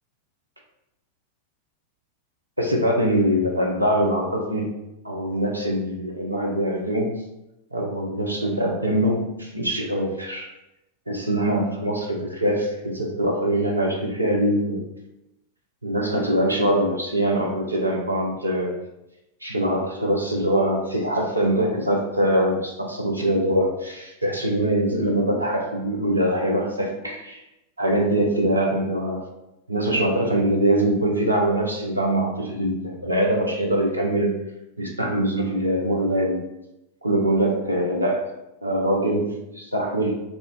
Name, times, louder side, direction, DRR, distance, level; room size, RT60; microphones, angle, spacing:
voice 1, 2.6-4.7 5.0-7.2 7.7-10.5 11.1-14.8 15.8-18.8 19.4-27.4 27.8-29.2 29.7-34.4 34.8-36.4 37.0-38.3 38.6-40.2, right 1 dB, 85° right, 0 dB, 0.4 m, -23 dB
2.4 x 2.2 x 3.6 m, 0.92 s
figure-of-eight pair, 90°, 0 cm